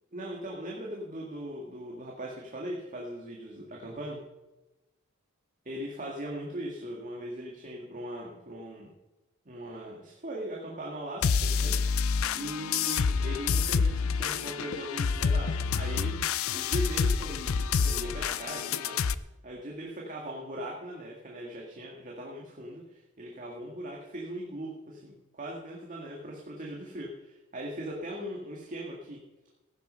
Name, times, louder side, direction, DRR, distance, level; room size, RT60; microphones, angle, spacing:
voice 1, 0.1-4.2 5.7-8.9 9.5-16.2 16.5-19.0 19.4-29.2, right 1 dB, 40° right, -2 dB, 2.0 m, -39 dB
sound 1, 11.2-19.1, left 5 dB, 75° left, 0.5 m, -28 dB
16.0 x 10.5 x 5.6 m, 1.1 s
head